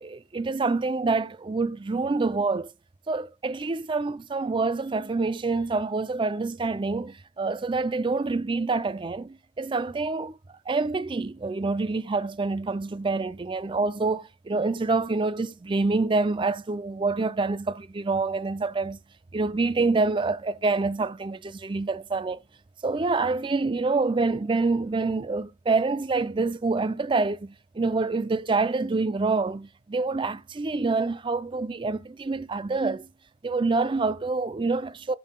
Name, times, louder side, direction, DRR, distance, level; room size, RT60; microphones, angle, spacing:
voice 1, 0.0-2.7 3.1-10.4 10.7-19.0 19.3-22.4 22.8-33.1 33.4-35.1, right 3 dB, 25° right, 0.4 m, -26 dB
15.0 x 5.4 x 2.2 m
head